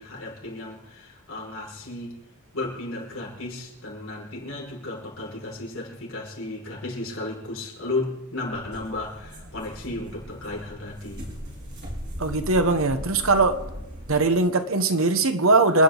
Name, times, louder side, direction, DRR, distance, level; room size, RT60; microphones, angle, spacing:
voice 1, 0.0-2.2 2.5-11.3, left 2 dB, 65° left, 5.6 m, -34 dB
sound 1, 8.5-14.4, equal, 50° right, 5.0 m, -38 dB
voice 2, 12.2-13.6 14.1-15.8, right 3 dB, 65° right, 1.2 m, -20 dB
28.5 x 10.0 x 4.0 m
head